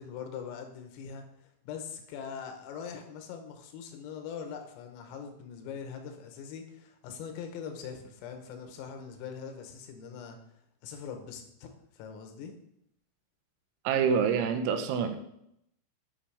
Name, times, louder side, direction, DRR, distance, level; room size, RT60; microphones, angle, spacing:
voice 1, 0.0-10.4 10.8-12.5, left 7 dB, 85° left, 5 dB, 3.6 m, -42 dB
voice 2, 13.9-15.2, right 6 dB, 90° right, 7 dB, 3.4 m, -26 dB
9.9 x 5.7 x 3.4 m, 0.76 s
omnidirectional pair, 6.0 m